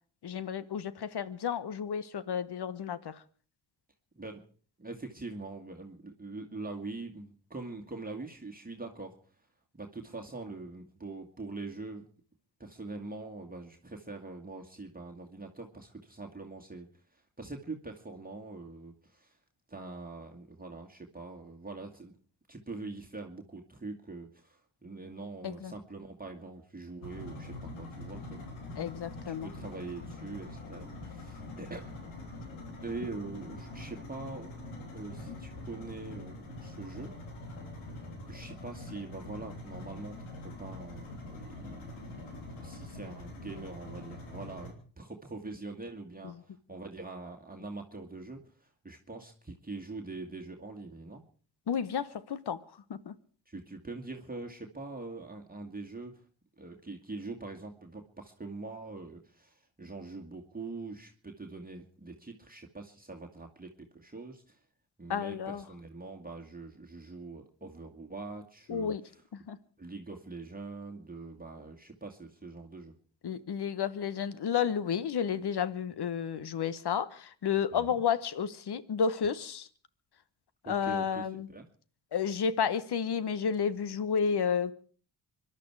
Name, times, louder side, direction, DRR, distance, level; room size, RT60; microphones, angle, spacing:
voice 1, 0.2-3.2 25.4-25.7 28.7-29.5 35.3-35.4 46.2-46.4 51.7-52.6 52.9-53.1 65.1-65.6 68.7-69.0 69.3-69.6 73.2-79.7 80.7-81.5 82.1-84.7, left 7 dB, 55° left, 16 dB, 1.3 m, -31 dB
voice 2, 4.8-9.2 9.8-12.1 12.6-19.4 19.7-22.1 22.5-28.4 29.3-32.0 32.8-34.5 34.9-37.1 38.3-51.2 53.5-56.2 56.6-64.6 65.0-68.9 69.8-72.9 77.7-78.0 80.7-81.7, right 3 dB, 20° right, 1 dB, 2.2 m, -43 dB
sound 1, 27.0-44.7, left 2 dB, 85° left, 3.4 m, -44 dB
25.0 x 11.5 x 4.8 m, 0.43 s
supercardioid pair, 45°, 47 cm